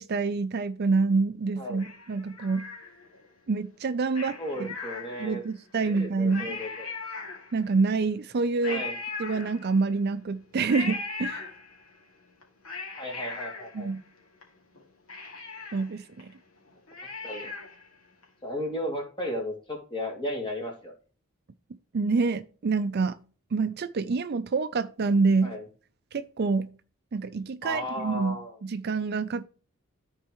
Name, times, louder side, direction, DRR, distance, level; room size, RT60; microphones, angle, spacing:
voice 1, 0.0-2.7 3.5-4.7 5.2-6.6 7.5-8.8 9.2-11.5 13.7-14.0 15.7-16.3 21.9-23.2 23.5-25.5 26.1-26.7 27.1-29.4, right 4 dB, 45° right, 0.4 m, -27 dB
Cat, 1.8-3.3 4.1-5.5 6.0-6.1 6.3-7.8 8.6-10.0 10.7-11.9 12.4-14.4 14.7-14.8 15.1-17.9 18.2-18.3, left 3 dB, 70° left, 2.4 m, -39 dB
voice 2, 4.4-5.4 5.8-6.9 8.7-9.0 13.0-13.9 17.2-17.5 18.4-20.9 25.4-25.6 27.6-28.6, left 1 dB, 20° left, 2.4 m, -34 dB
13.5 x 4.5 x 3.0 m
head